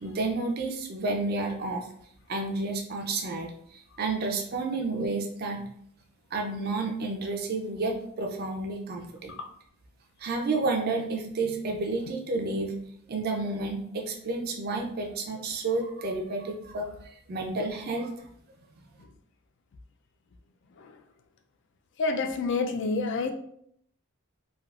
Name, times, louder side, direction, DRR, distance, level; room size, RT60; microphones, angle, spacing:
voice 1, 0.0-1.9 2.3-5.6 6.3-9.3 10.2-12.8 13.1-16.9 17.3-18.3, right 3 dB, 45° right, 2 dB, 0.4 m, -30 dB
voice 2, 22.0-23.3, left 3 dB, 55° left, 6 dB, 0.3 m, -28 dB
3.4 x 2.3 x 2.3 m, 0.69 s
head